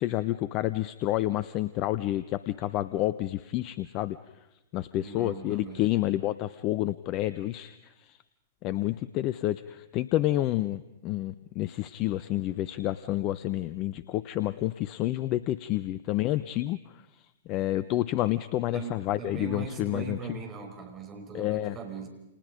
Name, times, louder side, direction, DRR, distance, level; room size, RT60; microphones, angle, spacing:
voice 1, 0.0-4.2 4.7-8.2 8.6-16.8 17.5-20.4 21.3-21.8, left 15 dB, 40° left, 15 dB, 0.8 m, -29 dB
voice 2, 4.9-5.8 18.7-22.1, right 5 dB, 25° right, 3 dB, 5.9 m, -40 dB
29.5 x 29.0 x 5.2 m, 0.95 s
figure-of-eight pair, 105°, 0 cm